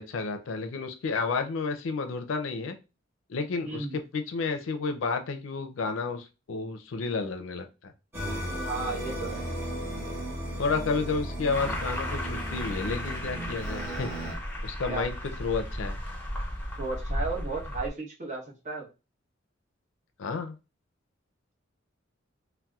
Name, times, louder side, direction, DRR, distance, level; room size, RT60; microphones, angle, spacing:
voice 1, 0.0-2.8 3.3-7.9 10.6-14.1 14.6-15.1 15.4-16.0 20.2-20.6, left 4 dB, 70° left, 7 dB, 0.4 m, -31 dB
voice 2, 3.6-3.9 8.6-9.6 14.9-15.0 16.8-18.9, right 3 dB, 35° right, -3 dB, 1.0 m, -34 dB
sound 1, 8.1-14.3, equal, 15° right, 0.9 m, -35 dB
sound 2, 11.5-17.9, left 1 dB, 10° left, 0.7 m, -35 dB
4.0 x 2.1 x 2.3 m, 0.29 s
head